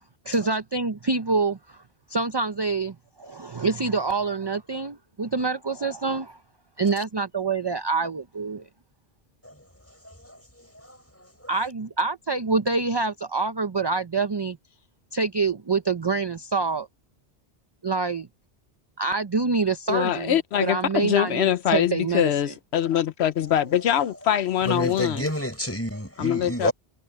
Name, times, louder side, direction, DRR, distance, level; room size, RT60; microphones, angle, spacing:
voice 1, 0.2-1.8 2.1-6.4 6.8-8.7 11.5-14.6 15.1-16.9 17.8-18.3 19.0-20.3 20.6-22.5, right 4 dB, 30° right, 0.6 m, -26 dB
voice 2, 10.0-10.4 10.9-11.0 24.6-26.7, left 1 dB, 15° left, 4.6 m, -29 dB
voice 3, 19.9-25.3 26.2-26.7, left 10 dB, 80° left, 0.9 m, -23 dB
omnidirectional pair, 1.1 m